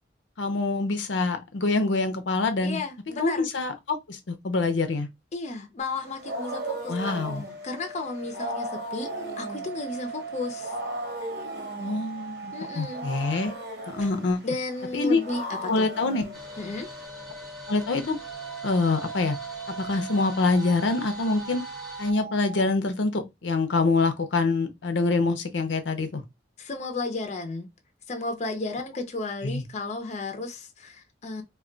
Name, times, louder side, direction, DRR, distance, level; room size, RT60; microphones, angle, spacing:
voice 1, 0.4-2.8 3.2-5.1 6.9-7.4 11.8-13.5 13.9-14.4 14.9-15.2 15.6-16.2 17.7-18.2 18.6-19.4 19.8-21.6 22.0-26.2 29.4-29.6, left 3 dB, 85° left, 0.6 m, -25 dB
voice 2, 2.6-3.5 5.3-7.2 7.6-10.8 12.5-13.1 14.0-14.1 14.4-15.9 16.6-16.9 26.6-27.7 28.1-31.4, left 3 dB, 40° left, 0.5 m, -33 dB
Wild animals, 5.8-17.1, equal, 75° right, 1.0 m, -38 dB
sound 1, 6.0-13.4 15.4-22.7, right 4 dB, 30° right, 0.5 m, -40 dB
sound 2, 16.3-22.1, right 1 dB, ahead, 0.8 m, -44 dB
2.2 x 2.2 x 3.7 m
head